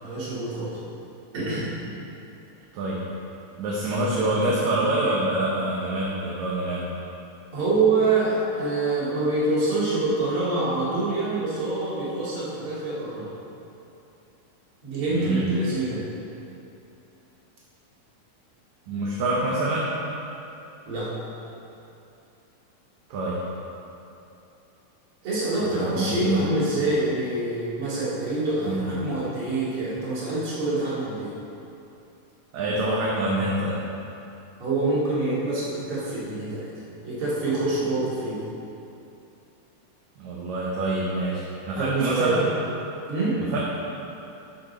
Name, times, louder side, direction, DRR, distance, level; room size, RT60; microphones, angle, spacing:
voice 1, 0.0-0.8 1.3-1.7 7.5-13.3 14.8-16.1 20.9-21.1 25.2-31.3 34.6-36.7 37.0-38.4 41.8-42.5 43.1-43.4, right 2 dB, 45° right, -9 dB, 2.8 m, -26 dB
voice 2, 3.6-6.9 15.1-15.5 18.9-19.9 23.1-23.4 25.6-26.4 28.6-28.9 32.5-33.8 40.2-42.5 43.5-43.6, right 1 dB, 70° right, -5 dB, 2.1 m, -26 dB
11.5 x 5.1 x 4.3 m, 2.8 s
omnidirectional pair, 3.7 m